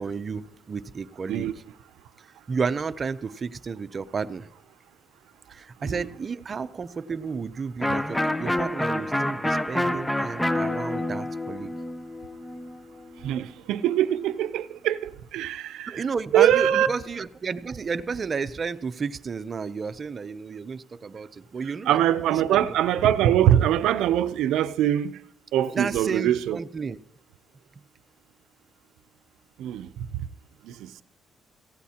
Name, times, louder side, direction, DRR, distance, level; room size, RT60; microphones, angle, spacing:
voice 1, 0.0-1.5 2.5-4.5 5.5-11.7 15.9-22.0 22.3-22.6 25.7-27.0, right 5 dB, 40° right, 0.6 m, -32 dB
Electric guitar, 7.8-13.4, left 1 dB, 5° left, 0.5 m, -28 dB
voice 2, 13.2-16.0 16.3-16.9 21.9-25.2 25.5-26.6 29.6-30.3 30.6-31.0, right 11 dB, 90° right, 0.6 m, -23 dB
18.0 x 15.0 x 2.9 m
cardioid pair, 90°, 0 cm